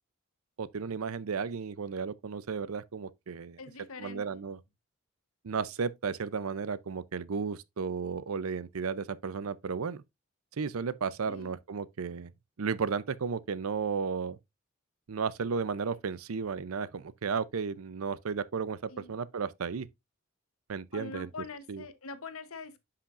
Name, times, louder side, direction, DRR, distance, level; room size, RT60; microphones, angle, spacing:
voice 1, 0.6-3.6 4.0-4.6 5.4-10.0 10.6-12.3 12.6-14.4 15.1-19.9 20.7-21.3 21.7-21.8, right 5 dB, 90° right, 0.6 m, -34 dB
voice 2, 3.6-4.4 11.3-11.5 18.9-19.1 20.9-22.8, left 4 dB, 90° left, 1.0 m, -43 dB
10.0 x 5.7 x 2.5 m
head